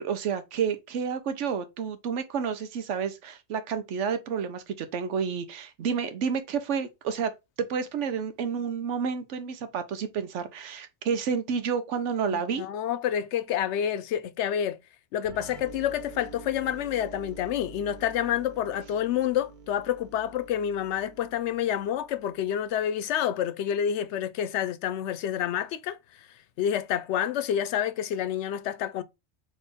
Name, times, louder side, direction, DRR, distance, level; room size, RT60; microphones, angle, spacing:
voice 1, 0.0-7.3 7.6-12.6, right 6 dB, 90° right, 1.1 m, -30 dB
voice 2, 12.3-14.8 15.1-26.3 26.6-29.0, left 10 dB, 75° left, 0.9 m, -28 dB
sound 1, 15.2-22.8, right 4 dB, 45° right, 0.8 m, -48 dB
4.3 x 3.1 x 3.4 m
omnidirectional pair, 1.2 m